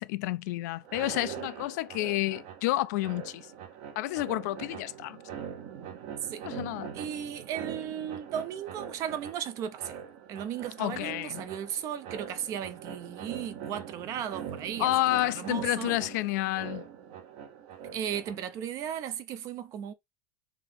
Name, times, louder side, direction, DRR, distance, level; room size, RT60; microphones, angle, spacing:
voice 1, 0.0-3.5 4.0-5.2 6.4-6.9 10.8-11.4 14.8-16.8, left 17 dB, 60° left, 0.4 m, -30 dB
sound 1, 0.8-18.7, right 8 dB, 50° right, 0.8 m, -43 dB
voice 2, 6.9-10.0 10.3-14.9 15.2-15.9 17.9-19.9, right 9 dB, 30° right, 0.5 m, -36 dB
3.5 x 2.8 x 3.7 m
supercardioid pair, 165°, 10 cm